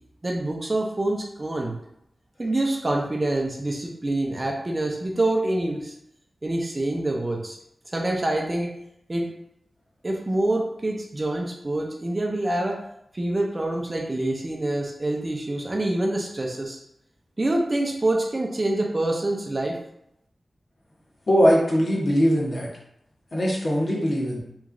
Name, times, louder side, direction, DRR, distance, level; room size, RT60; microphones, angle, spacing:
voice 1, 0.2-1.8 2.4-5.9 6.4-7.6 7.9-8.7 9.1-9.3 10.0-12.8 13.1-16.8 17.4-19.8, right 1 dB, 30° right, 1 dB, 0.5 m, -26 dB
voice 2, 21.3-22.7 23.3-24.4, equal, 45° left, -4 dB, 1.0 m, -21 dB
3.0 x 2.4 x 3.7 m, 0.75 s
wide cardioid pair, 95°, 0 cm